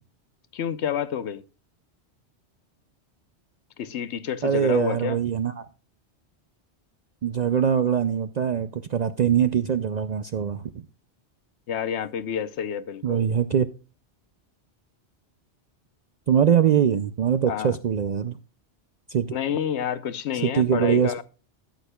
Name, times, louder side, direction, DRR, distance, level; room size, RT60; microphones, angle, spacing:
voice 1, 0.5-1.4 3.8-5.2 11.7-13.3 17.5-17.8 19.3-21.2, left 8 dB, 75° left, 1.0 m, -29 dB
voice 2, 4.4-5.7 7.2-10.7 13.0-13.7 16.3-18.4 19.1-19.4 20.4-21.1, right 8 dB, 60° right, 0.4 m, -22 dB
14.0 x 8.3 x 2.2 m
omnidirectional pair, 1.2 m